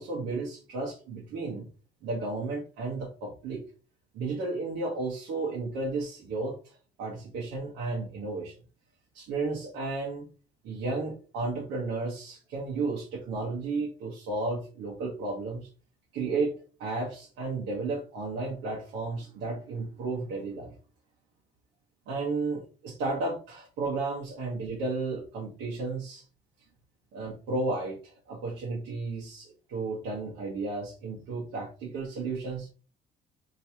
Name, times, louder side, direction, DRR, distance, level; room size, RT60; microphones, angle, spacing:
voice 1, 0.0-1.7 2.0-3.6 4.1-8.5 9.1-10.2 10.6-15.7 16.1-20.7 22.1-26.2 27.1-32.7, right 3 dB, 85° right, -3 dB, 1.2 m, -33 dB
3.1 x 2.8 x 4.5 m, 0.36 s
cardioid pair, 110°, 17 cm